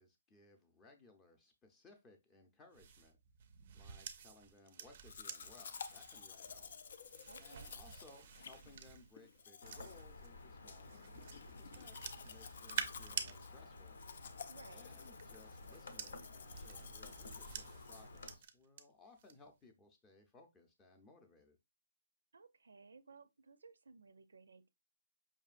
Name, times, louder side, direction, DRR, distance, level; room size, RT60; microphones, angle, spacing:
voice 1, 0.0-3.2 3.7-14.4 14.7-21.6, left 3 dB, 10° left, 0.6 m, -63 dB
sound 1, 2.7-10.3 10.9-13.3 14.6-18.8 19.2-19.5, right 8 dB, 40° right, 0.5 m, -49 dB
Domestic sounds home sounds, 5.0-18.4, left 6 dB, 55° left, 0.4 m, -53 dB
voice 2, 7.2-7.7 14.5-14.9 22.3-24.7, right 4 dB, 90° right, 0.5 m, -59 dB
sound 2, 9.6-18.3, left 3 dB, 70° left, 0.8 m, -54 dB
5.2 x 2.6 x 2.4 m
hypercardioid pair, 160°, 0 cm